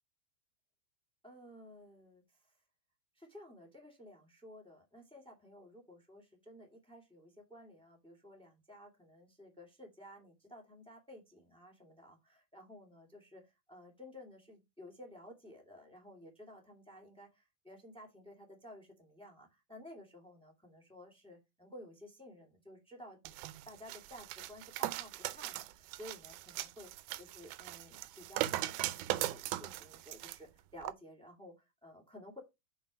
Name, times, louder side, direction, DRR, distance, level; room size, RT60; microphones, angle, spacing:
voice 1, 1.2-2.2 3.2-23.2 23.6-32.4, left 1 dB, 5° left, 2 dB, 0.8 m, -54 dB
sound 1, 23.2-30.4 30.8-30.9, right 16 dB, 85° right, 2.4 m, -39 dB
6.6 x 3.9 x 5.1 m, 0.22 s
omnidirectional pair, 4.3 m